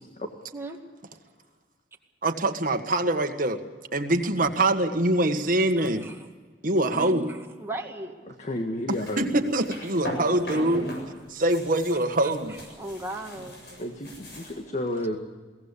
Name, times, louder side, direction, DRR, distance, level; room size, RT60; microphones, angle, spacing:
voice 1, 2.2-3.6 3.9-6.1 6.6-7.3 9.2-10.9 11.3-12.6, right 1 dB, 50° right, 6 dB, 1.7 m, -24 dB
voice 2, 5.8-6.3 6.9-8.2 10.5-10.7 12.2-13.6, right 1 dB, 15° right, 1 dB, 2.1 m, -38 dB
voice 3, 8.4-9.5 13.8-15.2, left 1 dB, 40° left, 5 dB, 1.6 m, -31 dB
sound 1, 8.9-11.1 11.3-14.6, equal, 65° left, 7.6 m, -38 dB
22.5 x 17.5 x 8.4 m, 1.4 s
head